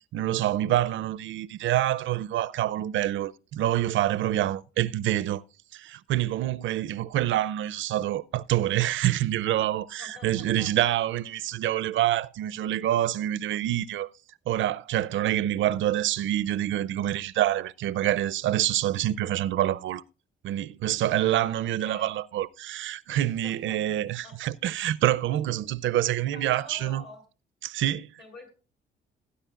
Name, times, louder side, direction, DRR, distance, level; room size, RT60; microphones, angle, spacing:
voice 1, 0.1-5.4 5.7-14.1 14.5-20.0 20.4-27.0 27.6-28.1, right 13 dB, 75° right, 0.5 m, -26 dB
voice 2, 10.0-10.9 21.2-22.1 23.4-23.8 24.2-24.3 26.3-27.2 28.2-28.5, left 2 dB, 60° left, 6.3 m, -47 dB
18.5 x 9.7 x 2.4 m
cardioid pair, 90°, 20 cm